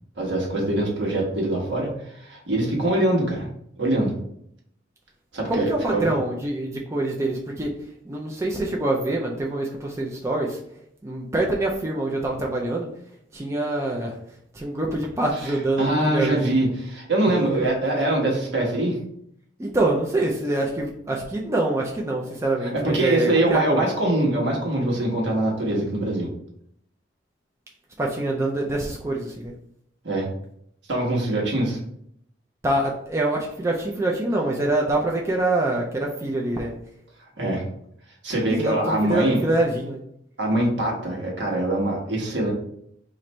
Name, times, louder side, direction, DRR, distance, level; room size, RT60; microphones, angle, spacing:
voice 1, 0.2-3.5 3.8-4.2 5.3-6.1 15.8-19.0 22.8-26.3 30.0-30.3 30.9-31.8 37.4-37.6 38.2-39.4 40.4-42.5, right 1 dB, 70° right, -2 dB, 1.2 m, -23 dB
voice 2, 5.5-10.6 11.0-12.9 13.3-14.2 14.5-16.5 17.6-17.7 19.6-23.8 28.0-29.5 32.6-36.7 38.5-40.0, right 2 dB, 15° right, -2 dB, 0.4 m, -25 dB
3.1 x 2.5 x 4.2 m, 0.71 s
head